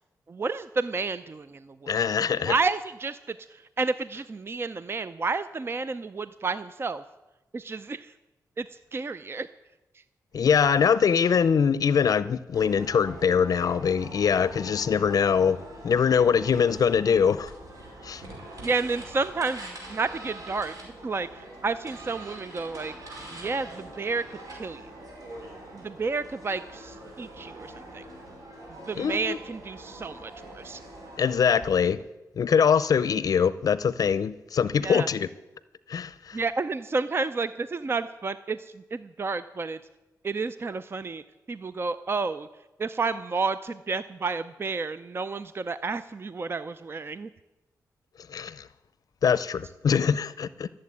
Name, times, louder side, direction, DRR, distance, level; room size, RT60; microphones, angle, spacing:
voice 1, 0.3-2.0 2.4-7.0 7.5-8.1 8.6-9.5 9.9-10.0 18.6-22.9 23.3-24.9 25.7-28.0 28.9-30.8 34.8-35.1 36.3-39.8 40.2-41.2 41.5-42.5 42.8-47.3, right 4 dB, 35° right, 0.5 m, -31 dB
voice 2, 1.9-2.5 10.3-15.6 15.8-17.5 18.0-18.2 29.0-29.4 31.2-32.0 32.4-35.3 35.9-36.4 48.3-48.7 49.2-50.7, left 7 dB, 65° left, 0.5 m, -23 dB
sound 1, 12.5-31.7, right 1 dB, 60° right, 4.9 m, -44 dB
13.5 x 7.6 x 9.5 m
cardioid pair, 70°, 7 cm